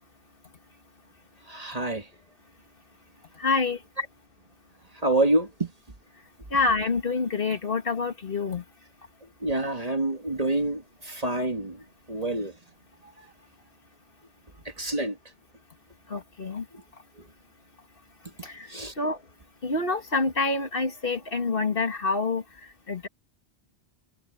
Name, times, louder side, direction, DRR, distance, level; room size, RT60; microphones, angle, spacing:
voice 1, 1.5-2.1 5.0-5.7 9.4-11.8 12.1-12.5 14.8-15.2 18.7-18.9, right 2 dB, 35° right, 1.8 m, -27 dB
voice 2, 3.4-3.8 6.5-8.6 16.1-16.7 18.4-19.2 19.6-23.1, left 3 dB, 55° left, 2.1 m, -27 dB
omnidirectional pair, 1.1 m